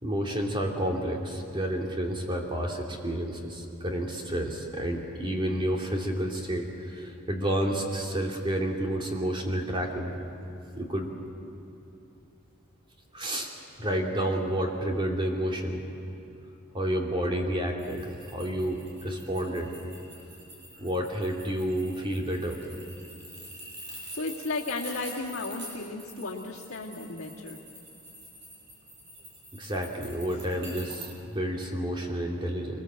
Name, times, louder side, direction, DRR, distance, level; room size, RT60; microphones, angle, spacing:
voice 1, 0.0-10.1 10.8-11.1 13.1-13.5 13.8-15.8 16.7-19.7 20.8-22.6 29.5-32.8, right 1 dB, 25° right, 0 dB, 2.7 m, -30 dB
sound 1, 17.8-31.1, right 1 dB, 60° right, 7.3 m, -46 dB
voice 2, 23.9-27.6, left 3 dB, 75° left, -8 dB, 2.1 m, -34 dB
24.0 x 21.0 x 7.7 m, 2.8 s
head